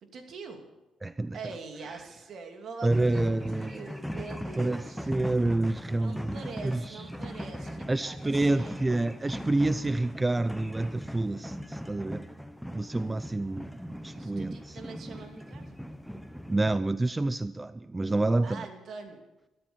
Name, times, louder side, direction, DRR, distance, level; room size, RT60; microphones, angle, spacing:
voice 1, 0.1-0.6 1.3-5.1 5.9-9.0 14.1-15.8 18.4-19.2, right 4 dB, 60° right, 2.7 m, -44 dB
voice 2, 1.0-1.4 2.8-3.8 4.6-4.8 5.1-7.0 7.9-12.3 12.7-13.7 14.0-14.8 16.5-18.6, right 2 dB, 20° right, 0.4 m, -28 dB
sound 1, 2.9-16.8, equal, ahead, 1.0 m, -39 dB
13.5 x 13.0 x 7.0 m
cardioid pair, 90°, 0 cm